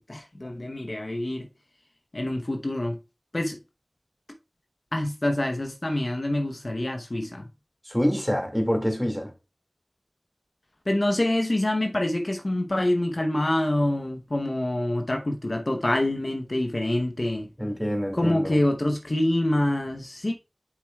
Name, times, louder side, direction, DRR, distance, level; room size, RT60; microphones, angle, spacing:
voice 1, 0.0-1.5 2.1-3.0 3.3-3.6 4.9-7.5 10.9-17.5 18.1-20.3, left 1 dB, 55° left, 0.8 m, -26 dB
voice 2, 7.8-9.3 17.6-18.6, equal, 10° left, 2.0 m, -26 dB
8.0 x 6.2 x 2.3 m
wide cardioid pair, 45°, 0 cm